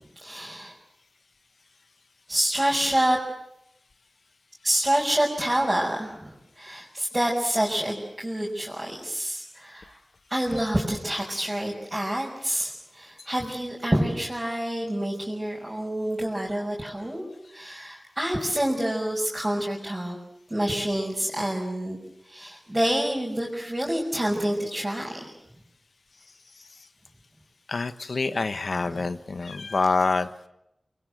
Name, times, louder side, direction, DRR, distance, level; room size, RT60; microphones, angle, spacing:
voice 1, 0.2-0.7 2.3-3.2 4.6-10.0 10.3-20.2 20.5-22.0 22.3-25.3 28.8-29.1, right 1 dB, 20° right, -4 dB, 6.0 m, -27 dB
voice 2, 27.7-30.3, left 3 dB, 75° left, 11 dB, 1.2 m, -26 dB
25.0 x 22.0 x 7.9 m, 0.81 s
cardioid pair, 50°, 0 cm